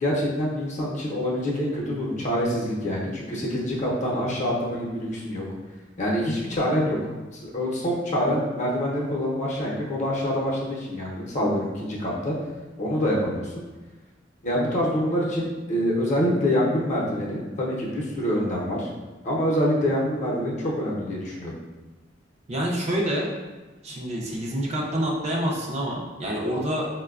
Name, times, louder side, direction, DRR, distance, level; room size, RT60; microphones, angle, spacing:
voice 1, 0.0-5.4 6.0-7.0 7.3-12.3 12.8-13.6 14.4-18.9 19.2-21.5, equal, 40° left, -4 dB, 0.7 m, -26 dB
voice 2, 22.5-23.3 23.8-26.9, equal, 35° right, -2 dB, 0.5 m, -27 dB
4.6 x 2.2 x 2.3 m, 1.2 s
head